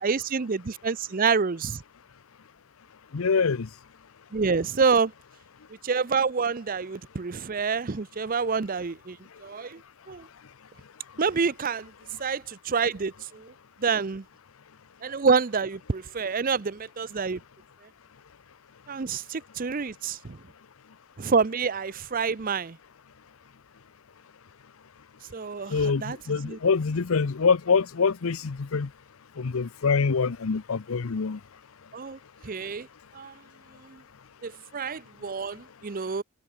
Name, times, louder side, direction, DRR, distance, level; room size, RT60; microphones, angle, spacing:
voice 1, 0.0-1.8 4.3-5.1 5.8-9.8 10.1-10.3 11.2-11.9 12.2-13.5 13.8-14.2 15.0-17.4 18.9-20.4 21.2-22.8 25.3-26.6 31.9-32.9 33.1-33.4 33.8-34.0 34.4-36.2, right 5 dB, 40° right, 0.6 m, -27 dB
voice 2, 3.1-3.7 25.7-28.9 29.4-31.4, left 5 dB, 80° left, 0.7 m, -25 dB
head